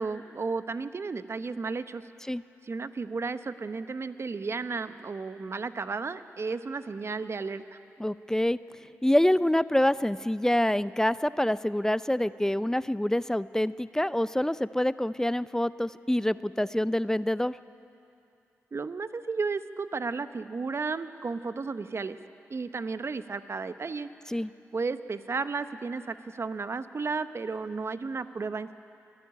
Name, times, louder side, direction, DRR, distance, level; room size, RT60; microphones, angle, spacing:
voice 1, 0.0-2.0 2.6-7.8 18.7-22.2 22.5-24.1 24.7-28.7, right 4 dB, 50° right, 12 dB, 0.9 m, -33 dB
voice 2, 8.0-8.6 9.0-17.6 24.3-24.5, left 1 dB, 10° left, 16 dB, 0.5 m, -26 dB
26.0 x 10.0 x 9.9 m, 2.7 s
supercardioid pair, 40°, 6 cm